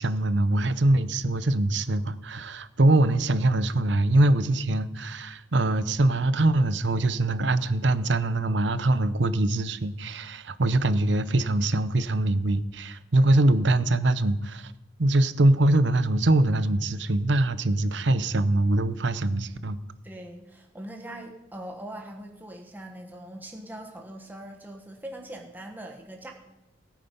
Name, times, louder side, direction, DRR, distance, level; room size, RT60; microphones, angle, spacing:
voice 1, 0.0-14.7 15.0-19.8, right 2 dB, 70° right, 14 dB, 0.8 m, -23 dB
voice 2, 20.0-26.3, right 1 dB, 10° right, 1 dB, 1.3 m, -41 dB
17.5 x 9.2 x 5.4 m, 1.0 s
head